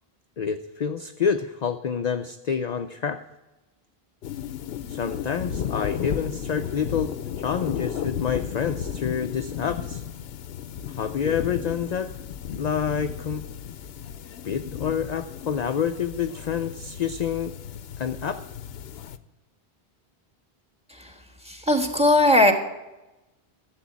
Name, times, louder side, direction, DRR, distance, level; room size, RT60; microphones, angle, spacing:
voice 1, 0.4-3.2 4.9-10.0 10.9-12.1 12.5-13.5 14.4-17.5 18.0-18.4, left 7 dB, 50° left, 9 dB, 0.6 m, -28 dB
sound 1, 4.2-19.2, left 9 dB, 75° left, 0.9 m, -34 dB
voice 2, 21.5-22.5, left 1 dB, 5° right, 5 dB, 1.5 m, -18 dB
13.0 x 7.5 x 8.5 m, 1.0 s
omnidirectional pair, 1.0 m